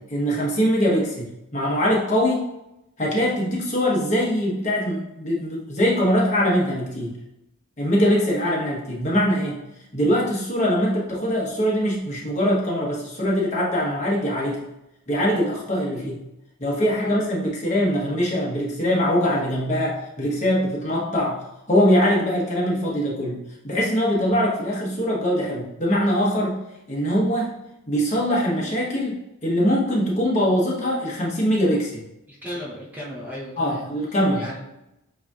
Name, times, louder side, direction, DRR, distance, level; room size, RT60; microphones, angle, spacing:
voice 1, 0.1-1.3 1.5-2.5 3.0-7.1 7.8-9.6 9.9-14.6 15.1-16.2 16.6-26.6 26.9-27.5 27.9-32.0 33.6-34.5, equal, 35° left, -4 dB, 1.0 m, -22 dB
voice 2, 32.3-33.9 34.3-34.7, equal, 10° right, -6 dB, 0.8 m, -36 dB
7.7 x 2.7 x 2.3 m, 0.90 s
head